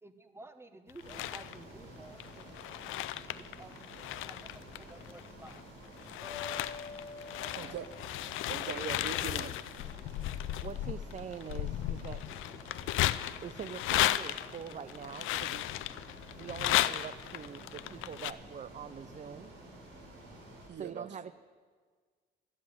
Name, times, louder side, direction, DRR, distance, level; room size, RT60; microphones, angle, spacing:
voice 1, 0.0-2.8 3.6-5.6 7.4-7.8, right 2 dB, 10° right, 9 dB, 1.1 m, -53 dB
sound 1, 0.9-1.6 2.2-5.6 6.0-18.3, left 14 dB, 85° left, 0.5 m, -35 dB
Ocean, 1.0-20.7, right 1 dB, 80° right, 3.9 m, -51 dB
sound 2, 6.2-9.3, left 4 dB, 70° left, 1.7 m, -48 dB
voice 2, 7.6-7.9 8.5-9.6 20.7-21.3, right 7 dB, 65° right, 11 dB, 0.9 m, -41 dB
voice 3, 10.6-12.4 13.4-15.7 16.3-19.5 20.7-21.3, right 7 dB, 35° right, 13 dB, 0.5 m, -44 dB
13.0 x 7.8 x 9.3 m, 1.5 s
cardioid pair, 90°, 20 cm